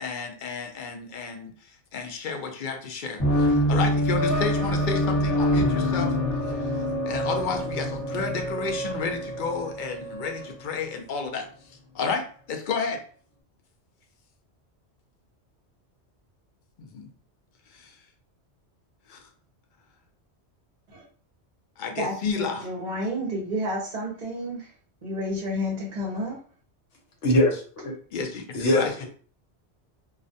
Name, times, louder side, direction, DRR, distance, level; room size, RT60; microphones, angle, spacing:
voice 1, 0.0-1.5 1.9-6.2 6.6-6.7 7.1-11.5 11.9-13.0 16.8-17.1 17.7-17.9 19.1-19.2 21.8-22.7 28.1-29.0, left 5 dB, 60° left, 4 dB, 0.5 m, -31 dB
sound 1, 3.2-10.5, equal, 20° left, 0.9 m, -25 dB
voice 2, 22.0-24.7 25.0-26.4, equal, 45° right, -3 dB, 0.7 m, -30 dB
voice 3, 27.2-27.9 28.5-29.1, left 1 dB, 80° left, 1 dB, 1.1 m, -22 dB
2.3 x 2.1 x 2.6 m, 0.42 s
omnidirectional pair, 1.2 m